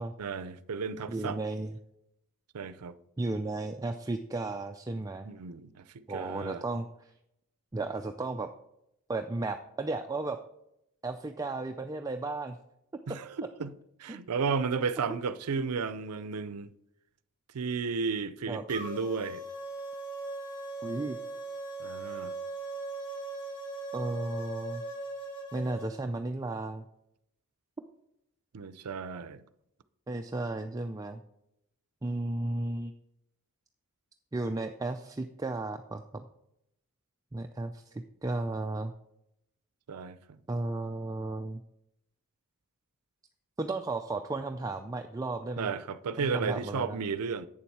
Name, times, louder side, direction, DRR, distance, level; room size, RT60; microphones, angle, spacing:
voice 1, 0.2-1.4 2.5-2.9 5.2-5.9 6.1-6.6 13.1-13.7 14.0-16.7 17.5-19.4 21.8-22.3 28.5-29.4 39.9-40.4 45.6-47.5, right 5 dB, 90° right, 0.5 m, -33 dB
voice 2, 1.1-1.7 3.2-5.3 6.1-7.1 7.7-8.5 9.1-10.4 11.0-12.6 14.1-14.2 15.1-15.2 18.5-18.6 20.8-21.2 23.9-24.8 25.5-26.8 30.1-31.2 32.0-32.9 34.3-36.3 37.3-38.9 40.5-41.6 43.6-45.7 46.2-47.0, right 2 dB, 15° right, 0.4 m, -34 dB
sound 1, 18.7-25.9, right 2 dB, 55° left, 2.6 m, -39 dB
8.7 x 7.0 x 4.7 m
head